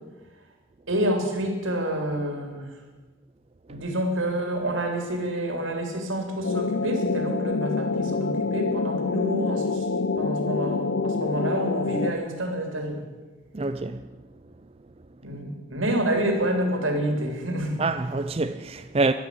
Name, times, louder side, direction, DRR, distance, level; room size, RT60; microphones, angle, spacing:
voice 1, 0.9-2.7 3.7-9.9 10.1-13.0 15.2-17.8, right 1 dB, 75° right, 3.3 m, -28 dB
sound 1, 6.4-12.1, left 4 dB, 65° left, 0.7 m, -26 dB
voice 2, 13.5-14.0 17.8-19.1, right 3 dB, 30° right, 0.5 m, -26 dB
13.0 x 12.0 x 8.6 m
head